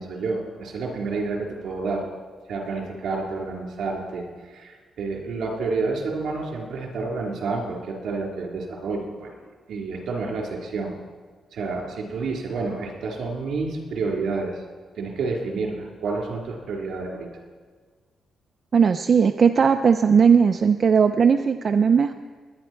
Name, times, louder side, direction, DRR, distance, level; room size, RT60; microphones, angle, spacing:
voice 1, 0.0-2.0 2.5-10.9 11.5-14.6 15.0-17.3, right 3 dB, 70° right, -1 dB, 3.8 m, -29 dB
voice 2, 18.7-22.1, right 6 dB, 40° right, 7 dB, 0.4 m, -18 dB
20.5 x 9.9 x 4.5 m, 1.5 s
wide cardioid pair, 160°, 0 cm